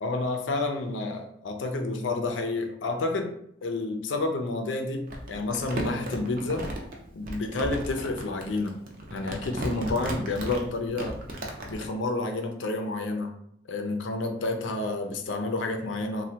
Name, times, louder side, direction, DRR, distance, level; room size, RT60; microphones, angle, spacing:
voice 1, 0.0-3.3 3.6-6.7 7.1-8.8 9.1-11.2 11.7-13.3 13.7-16.2, left 2 dB, 85° left, 5 dB, 0.5 m, -30 dB
Crumpling crinkling, 5.1-11.9, right 1 dB, 50° right, 0.5 m, -35 dB
3.2 x 2.2 x 2.8 m, 0.71 s
head